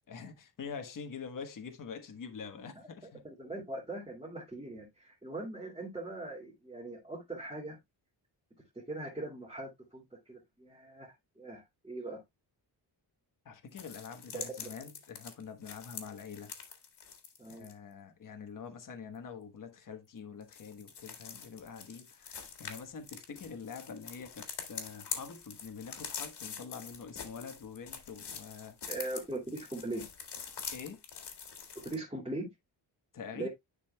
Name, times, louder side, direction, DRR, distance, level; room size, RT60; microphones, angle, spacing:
voice 1, 0.1-3.2 13.4-16.5 17.5-28.8 30.7-31.0 33.1-33.5, left 6 dB, 45° left, 1.3 m, -45 dB
voice 2, 3.2-7.8 8.7-12.2 14.3-14.7 17.4-17.7 28.9-30.1 31.7-32.5 33.3-33.5, right 2 dB, 10° right, 2.4 m, -41 dB
sound 1, 13.8-17.7 20.4-32.0, left 6 dB, 65° left, 2.1 m, -44 dB
10.5 x 5.5 x 2.2 m
wide cardioid pair, 155°, 44 cm